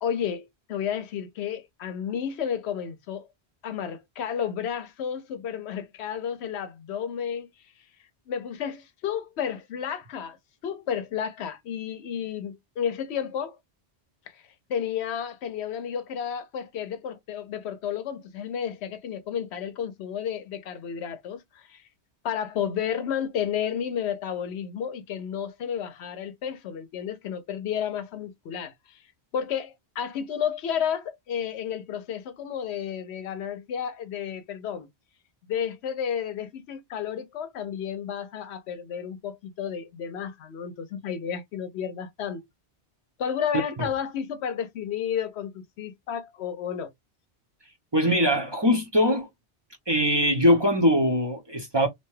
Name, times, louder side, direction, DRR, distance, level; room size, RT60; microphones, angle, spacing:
voice 1, 0.0-3.3 3.6-7.5 8.3-10.4 10.6-13.6 14.3-14.4 14.7-21.8 22.2-29.0 29.3-34.9 35.5-42.4 43.2-46.9, left 8 dB, 75° left, 0.8 m, -32 dB
voice 2, 47.9-49.3 49.9-51.9, equal, 25° right, 0.7 m, -22 dB
2.8 x 2.2 x 3.0 m
omnidirectional pair, 1.1 m